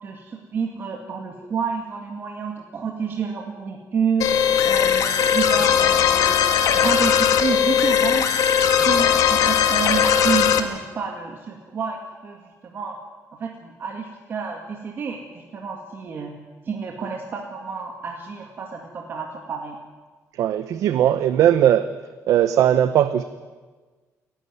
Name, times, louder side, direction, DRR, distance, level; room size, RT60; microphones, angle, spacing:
voice 1, 0.0-4.3 4.7-6.4 6.7-8.3 8.8-13.0 13.4-16.3 16.6-19.8, right 6 dB, 40° right, 1 dB, 2.0 m, -29 dB
sound 1, 4.2-10.6, left 8 dB, 75° left, 1.7 m, -18 dB
voice 2, 20.4-21.9 22.3-23.2, right 11 dB, 70° right, 11 dB, 0.8 m, -18 dB
29.0 x 11.5 x 9.5 m, 1.4 s
cardioid pair, 175°, 6 cm